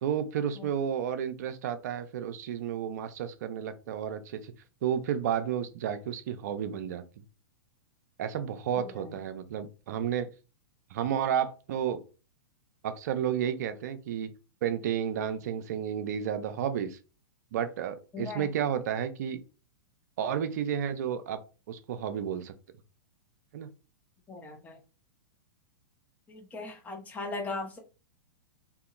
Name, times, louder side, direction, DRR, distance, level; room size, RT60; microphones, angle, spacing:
voice 1, 0.0-4.5 4.8-7.0 8.2-10.3 10.9-12.0 12.8-14.3 14.6-17.0 17.5-19.4 20.2-21.4 21.7-22.5 23.5-23.7, right 9 dB, 55° right, 0.5 m, -31 dB
voice 2, 8.8-9.2 18.1-18.5 24.3-24.8 26.3-27.8, left 3 dB, 15° left, 0.7 m, -38 dB
2.8 x 2.6 x 2.4 m
figure-of-eight pair, 105°, 11 cm